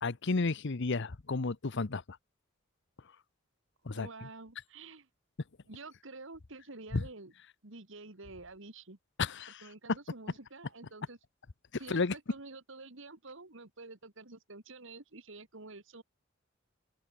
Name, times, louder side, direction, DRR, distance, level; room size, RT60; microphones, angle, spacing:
voice 1, 0.0-2.2 3.8-4.1 6.9-7.0 9.2-9.6 11.9-12.1, left 3 dB, 60° left, 0.9 m, -32 dB
voice 2, 3.9-5.1 5.7-7.3 7.6-9.0 9.6-11.2 11.8-16.0, right 3 dB, 65° right, 2.3 m, -49 dB
open air
head